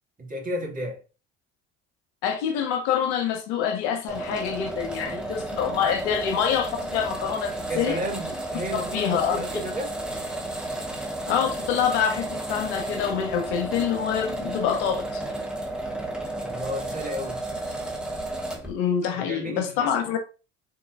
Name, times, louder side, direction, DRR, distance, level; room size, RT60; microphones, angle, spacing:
voice 1, 0.2-1.0 7.7-10.0 16.4-17.4 19.1-19.9, equal, 25° right, 1.7 m, -32 dB
voice 2, 2.2-8.0 8.7-9.4 11.3-15.2 18.6-20.2, left 8 dB, 75° left, 0.8 m, -26 dB
sound 1, 4.1-18.7, right 1 dB, 5° right, 1.0 m, -32 dB
4.0 x 2.9 x 2.4 m
hypercardioid pair, 70°, 34 cm